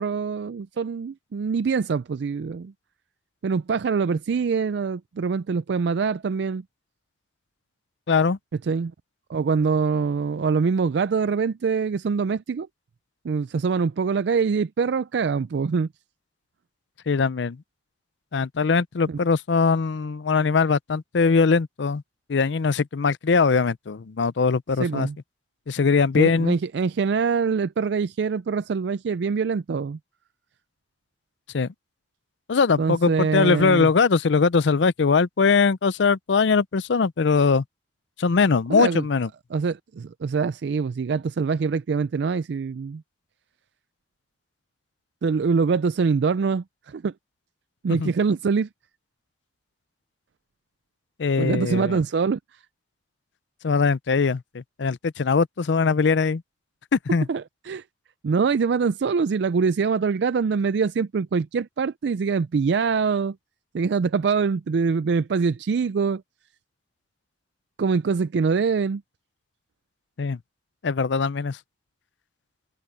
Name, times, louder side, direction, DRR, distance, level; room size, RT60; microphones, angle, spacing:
voice 1, 0.0-2.7 3.4-6.6 8.6-8.9 9.3-12.7 13.2-15.9 19.1-19.2 24.8-25.2 26.2-30.0 32.8-33.9 38.7-39.0 39.5-43.0 45.2-47.1 47.8-48.7 51.4-52.4 57.3-57.8 58.2-63.4 63.7-66.2 67.8-69.0, right 5 dB, 65° right, 0.4 m, -24 dB
voice 2, 8.1-8.4 17.1-17.6 18.3-22.0 22.3-25.1 25.7-26.5 31.5-31.7 32.5-37.6 38.2-39.3 47.9-48.1 51.2-52.0 53.6-56.4 56.9-57.3 70.2-70.4 70.8-71.6, left 5 dB, 75° left, 0.5 m, -21 dB
head